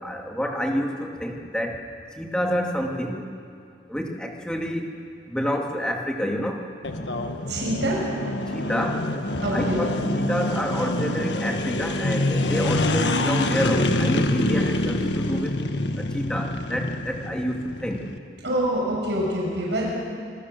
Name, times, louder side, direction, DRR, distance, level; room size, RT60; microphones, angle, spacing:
voice 1, 0.0-1.8 2.2-3.2 3.9-4.9 5.3-6.6 8.5-9.2 9.5-9.9 10.2-15.5 16.0-18.0, equal, 5° left, 0 dB, 2.5 m, -28 dB
sound 1, 6.8-18.2, left 2 dB, 85° left, 1.5 m, -26 dB
voice 2, 7.5-8.0 9.4-9.9 18.4-19.9, right 1 dB, 85° right, -3 dB, 6.1 m, -25 dB
27.0 x 20.5 x 6.9 m, 2.4 s
head